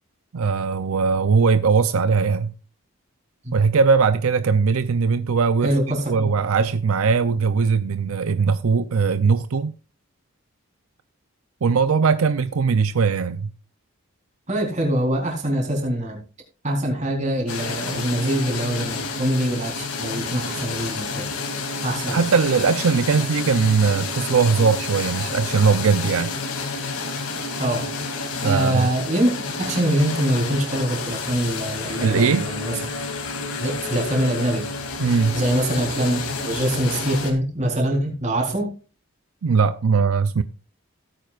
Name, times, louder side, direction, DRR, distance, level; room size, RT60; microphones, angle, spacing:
voice 1, 0.3-2.5 3.5-5.7 6.1-9.7 11.6-13.5 22.1-26.3 28.4-28.9 32.0-32.5 35.0-35.4 39.4-40.4, right 5 dB, 75° right, 0.5 m, -20 dB
voice 2, 5.6-6.3 14.5-16.2 16.6-21.3 21.8-22.2 27.6-27.8 28.4-32.9 33.6-34.7 35.3-38.7, right 1 dB, 35° right, 3.9 m, -24 dB
sound 1, 17.5-37.3, left 4 dB, 85° left, 2.7 m, -30 dB
17.0 x 9.2 x 2.4 m
head